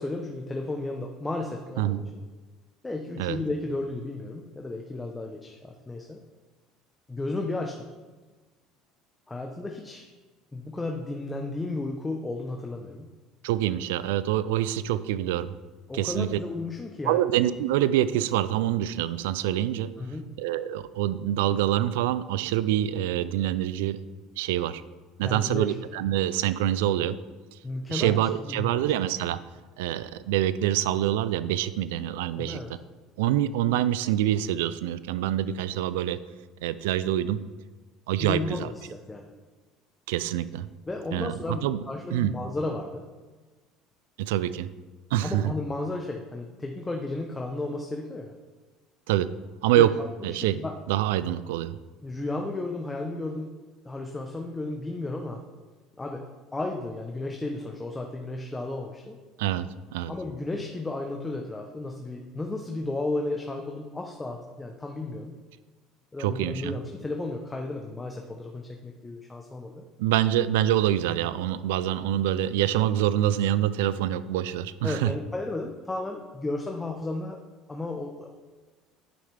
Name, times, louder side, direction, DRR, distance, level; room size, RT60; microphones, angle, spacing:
voice 1, 0.0-2.2 2.8-6.2 7.1-7.9 9.3-10.1 10.5-13.1 15.9-17.2 20.0-20.3 25.2-25.7 27.6-28.8 32.4-32.7 38.2-39.3 40.9-43.1 45.2-48.3 49.8-49.9 50.3-50.7 52.0-53.5 53.8-55.4 56.0-56.3 56.5-59.2 60.1-65.3 66.1-69.9 74.8-77.4 77.7-78.4, left 2 dB, 15° left, 2 dB, 0.8 m, -33 dB
voice 2, 13.4-15.5 15.9-16.4 17.0-19.9 20.4-24.0 24.4-24.8 25.2-27.2 27.9-29.4 29.8-32.6 33.2-36.2 36.6-37.4 38.1-38.7 40.1-40.7 41.1-41.8 42.1-42.3 44.2-44.7 45.1-45.4 49.1-49.3 49.6-49.9 50.2-50.6 50.9-51.8 59.4-60.1 66.2-66.8 70.0-75.1, right 12 dB, 85° right, 15 dB, 0.3 m, -26 dB
9.4 x 5.7 x 3.4 m, 1.3 s
supercardioid pair, 85°, 0 cm